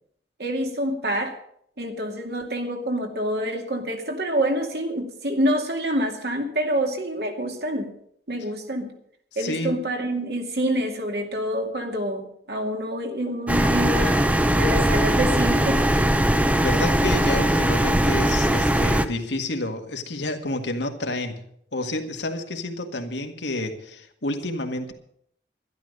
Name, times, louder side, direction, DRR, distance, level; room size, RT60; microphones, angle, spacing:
voice 1, 0.4-1.4 1.8-7.9 8.3-8.9 9.4-14.3 14.6-16.1, right 1 dB, 65° right, 3 dB, 2.3 m, -27 dB
voice 2, 9.3-9.7 16.6-21.4 21.7-24.9, left 2 dB, 85° left, 4 dB, 1.9 m, -29 dB
sound 1, 13.5-19.1, right 1 dB, 10° right, 0.6 m, -20 dB
12.0 x 11.5 x 6.6 m, 0.68 s
head